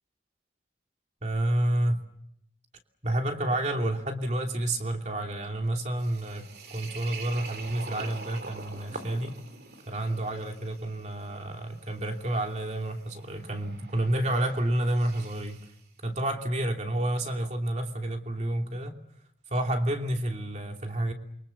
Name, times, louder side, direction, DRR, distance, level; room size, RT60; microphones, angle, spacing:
voice 1, 1.2-2.0 3.0-9.4 9.9-15.6 16.0-19.0 19.5-21.1, right 1 dB, 40° right, 3 dB, 2.9 m, -29 dB
Steel - Hot steel into water, 6.0-15.8, right 3 dB, 60° right, 2.9 m, -45 dB
29.0 x 24.5 x 7.1 m, 0.73 s
head